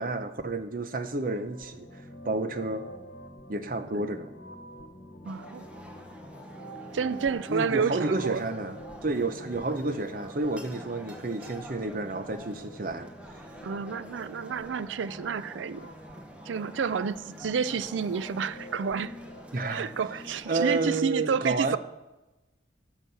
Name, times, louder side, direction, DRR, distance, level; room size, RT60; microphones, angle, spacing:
voice 1, 0.0-1.9 2.2-2.9 3.5-4.3 7.5-13.1 19.5-19.9 20.5-21.8, right 3 dB, 45° right, 0.7 m, -30 dB
sound 1, 1.2-19.5, right 1 dB, 70° left, 1.0 m, -50 dB
sound 2, 1.7-21.1, left 1 dB, 25° left, 0.7 m, -49 dB
sound 3, 5.2-21.0, equal, 5° right, 0.9 m, -48 dB
voice 2, 5.3-5.7 6.9-8.4 13.6-15.9 16.5-19.1 19.7-21.8, right 6 dB, 85° right, 0.4 m, -30 dB
11.0 x 6.0 x 6.8 m
head